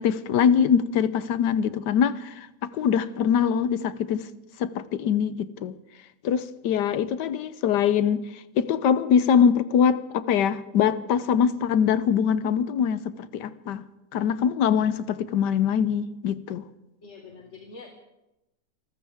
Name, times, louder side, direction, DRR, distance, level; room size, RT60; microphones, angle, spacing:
voice 1, 0.0-2.5 2.7-4.3 4.6-5.8 6.2-16.6, left 7 dB, 80° left, 1.4 m, -23 dB
voice 2, 17.0-17.9, left 4 dB, 45° left, 1.9 m, -44 dB
27.0 x 14.5 x 3.6 m
omnidirectional pair, 1.8 m